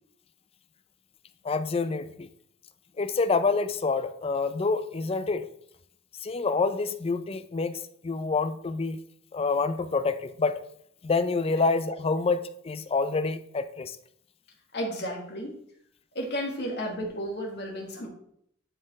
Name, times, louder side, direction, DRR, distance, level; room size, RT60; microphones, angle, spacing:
voice 1, 1.4-2.3 3.0-5.5 6.2-9.0 9.3-10.6 11.0-14.0, left 4 dB, 30° left, 11 dB, 0.4 m, -27 dB
voice 2, 14.7-15.6 16.1-18.1, equal, 60° left, -1 dB, 1.7 m, -33 dB
11.0 x 4.4 x 3.1 m, 0.68 s
head